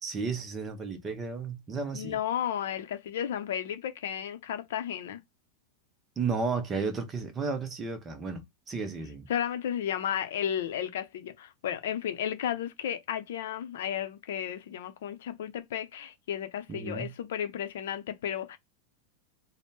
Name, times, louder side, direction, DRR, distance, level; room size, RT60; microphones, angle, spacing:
voice 1, 0.0-2.2 6.2-8.4 8.7-9.3 16.7-17.1, right 4 dB, 15° right, 0.6 m, -33 dB
voice 2, 1.9-5.2 9.3-18.6, left 9 dB, 80° left, 0.7 m, -33 dB
3.5 x 2.1 x 4.1 m
supercardioid pair, 170°, 0 cm